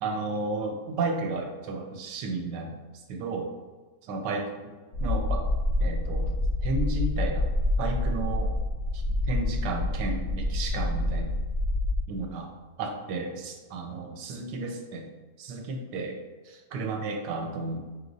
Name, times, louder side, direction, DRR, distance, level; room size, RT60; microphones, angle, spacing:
voice 1, 0.0-2.8 3.1-3.5 4.1-4.7 5.0-5.5 5.8-6.3 6.6-7.5 7.8-8.5 8.9-11.4 12.1-12.5 12.8-15.1 15.4-16.2 16.5-17.8, right 3 dB, 75° right, 3 dB, 1.2 m, -33 dB
sound 1, 4.9-12.0, left 2 dB, 60° left, 0.7 m, -27 dB
4.8 x 3.0 x 2.6 m, 1.3 s
omnidirectional pair, 1.9 m